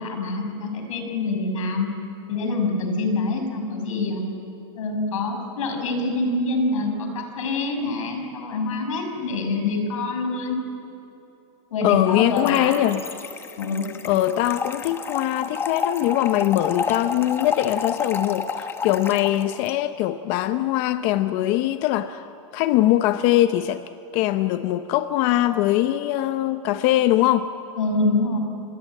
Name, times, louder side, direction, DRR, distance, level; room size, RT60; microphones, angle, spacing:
voice 1, 0.0-1.9 2.3-4.3 4.8-10.6 11.7-12.8 13.6-13.8 27.8-28.4, left 3 dB, 85° left, 5 dB, 6.2 m, -25 dB
voice 2, 11.8-13.0 14.0-22.3 22.5-23.8 24.1-27.5, left 14 dB, 40° left, 11 dB, 0.7 m, -22 dB
Trickle dribble / Fill (with liquid), 12.4-19.7, left 5 dB, 15° left, 1.1 m, -30 dB
29.0 x 21.0 x 8.6 m, 3.0 s
supercardioid pair, 160°, 16 cm